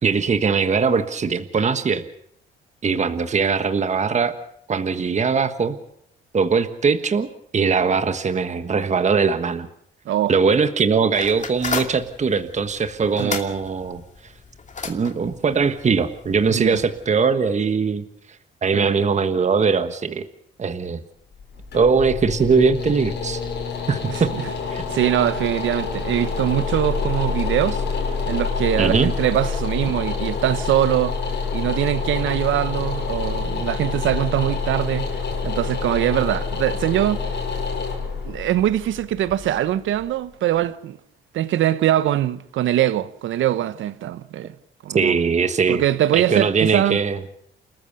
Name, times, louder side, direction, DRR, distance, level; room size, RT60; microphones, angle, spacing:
voice 1, 0.0-2.0 2.8-4.3 4.7-5.8 6.3-7.3 7.5-9.7 10.3-14.0 14.8-18.0 18.6-20.3 20.6-21.0 21.7-23.4 23.9-24.3 24.7-24.8 28.8-29.1 44.9-45.8 46.1-47.2, right 5 dB, 35° right, 1.4 m, -20 dB
sound 1, 11.1-17.1, left 4 dB, 40° left, 2.6 m, -34 dB
voice 2, 16.5-16.8 18.7-18.9 24.1-24.5 24.9-27.8 28.3-31.2 31.5-35.1 35.4-37.2 38.2-41.0 41.3-44.5 44.8-45.2 45.7-47.0, right 12 dB, 75° right, 1.0 m, -22 dB
sound 2, 21.3-40.3, left 5 dB, 60° left, 6.2 m, -27 dB
29.5 x 14.0 x 6.8 m
cardioid pair, 90°, 20 cm